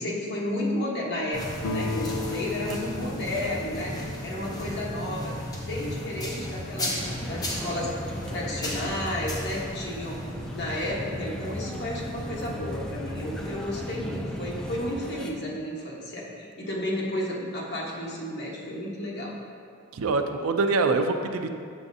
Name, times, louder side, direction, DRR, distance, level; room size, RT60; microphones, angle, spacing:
voice 1, 0.0-4.0 4.2-5.4 5.7-7.9 8.3-10.2 10.5-19.3, left 1 dB, 55° left, -4 dB, 1.2 m, -32 dB
sound 1, 1.3-14.9, left 1 dB, 20° left, 0.8 m, -35 dB
sound 2, 1.6-5.2, left 2 dB, 80° left, 0.5 m, -35 dB
sound 3, 7.0-15.3, equal, 5° left, 0.3 m, -41 dB
voice 2, 19.9-21.5, right 3 dB, 80° right, 6 dB, 0.4 m, -24 dB
6.9 x 6.1 x 2.7 m, 2.2 s
head